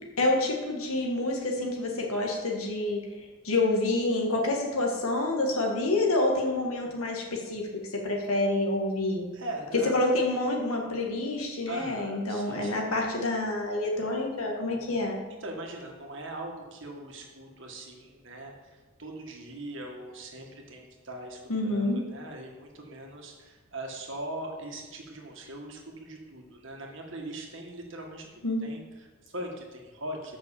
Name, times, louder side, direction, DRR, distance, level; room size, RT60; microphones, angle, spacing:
voice 1, 0.2-3.0 3.4-7.6 8.0-9.2 9.8-15.2 21.5-22.0 28.4-28.7, left 2 dB, 80° left, 0 dB, 1.9 m, -27 dB
voice 2, 9.3-10.1 11.7-12.7 15.3-30.4, right 1 dB, 55° right, 1 dB, 1.8 m, -41 dB
7.8 x 6.2 x 7.2 m, 1.3 s
head